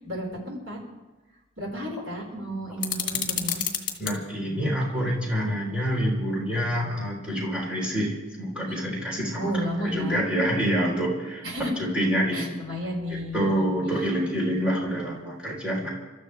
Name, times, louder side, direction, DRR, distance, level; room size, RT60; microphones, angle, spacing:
voice 1, 0.0-0.8 1.6-3.6 8.7-8.8 9.4-10.2 11.4-11.8 12.3-13.7 14.9-15.2, equal, 85° right, -2 dB, 5.5 m, -32 dB
sound 1, 2.8-4.2, left 9 dB, 45° left, 2.2 m, -29 dB
voice 2, 4.0-9.5 9.9-11.4 11.8-12.6 13.3-15.9, equal, 5° right, -4 dB, 4.1 m, -27 dB
28.5 x 13.5 x 3.5 m, 1.2 s
head